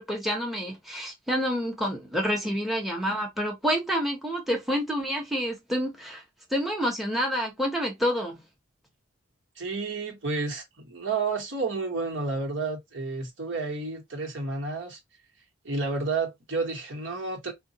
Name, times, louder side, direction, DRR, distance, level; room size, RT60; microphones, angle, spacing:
voice 1, 0.0-6.2 6.5-8.4, equal, ahead, 0.8 m, -28 dB
voice 2, 9.6-15.0 15.6-17.5, right 3 dB, 70° right, 1.1 m, -31 dB
3.6 x 2.2 x 2.8 m
head